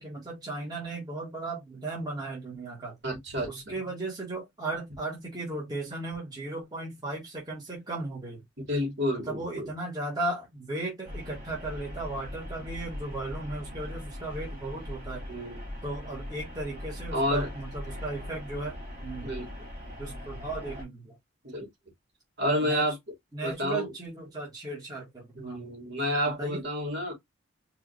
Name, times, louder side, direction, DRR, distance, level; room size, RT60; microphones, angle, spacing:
voice 1, 0.0-3.0 3.4-8.4 9.1-15.2 15.8-18.8 19.0-19.3 20.0-21.2 22.6-22.8 23.3-25.6 26.4-26.6, right 2 dB, 20° right, 1.7 m, -36 dB
voice 2, 3.0-3.7 8.7-9.7 15.3-15.6 17.1-17.5 19.2-19.5 21.4-21.7 22.4-23.0 23.4-23.9 25.4-27.1, equal, 55° right, 2.6 m, -30 dB
sound 1, 11.0-20.9, left 1 dB, 35° right, 2.8 m, -40 dB
4.7 x 2.7 x 3.2 m
head